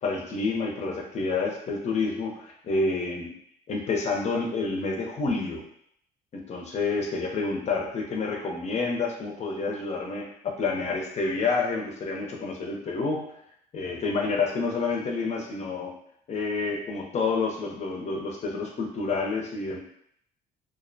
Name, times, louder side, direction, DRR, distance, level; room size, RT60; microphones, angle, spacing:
voice 1, 0.0-3.3 3.7-5.6 6.3-13.2 13.7-15.9 16.3-19.8, left 4 dB, 40° left, 1 dB, 0.6 m, -29 dB
2.4 x 2.1 x 2.6 m, 0.68 s
cardioid pair, 110°, 17 cm